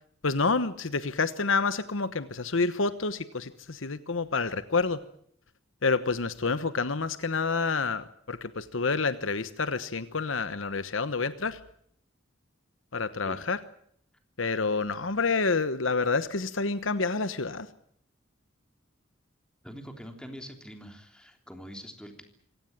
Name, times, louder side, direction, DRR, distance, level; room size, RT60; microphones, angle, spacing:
voice 1, 0.2-5.0 5.8-11.6 12.9-13.6 14.4-17.7, left 4 dB, 70° left, 13 dB, 1.1 m, -28 dB
voice 2, 19.6-22.2, equal, 5° left, 5 dB, 3.4 m, -44 dB
25.5 x 17.5 x 8.9 m, 0.67 s
head